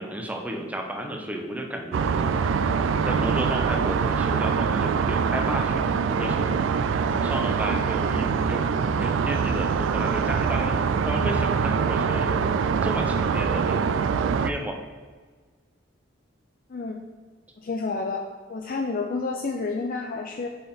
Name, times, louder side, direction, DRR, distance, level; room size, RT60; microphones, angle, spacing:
voice 1, 0.0-2.4 3.0-6.7 7.2-8.7 9.0-10.8 11.0-12.5 12.8-14.0 14.4-14.8, right 1 dB, 10° right, 2 dB, 0.7 m, -33 dB
sound 1, 1.9-14.5, right 6 dB, 80° right, 0.3 m, -24 dB
voice 2, 17.6-20.5, left 4 dB, 50° left, 2 dB, 0.5 m, -30 dB
5.7 x 5.2 x 4.3 m, 1.5 s
head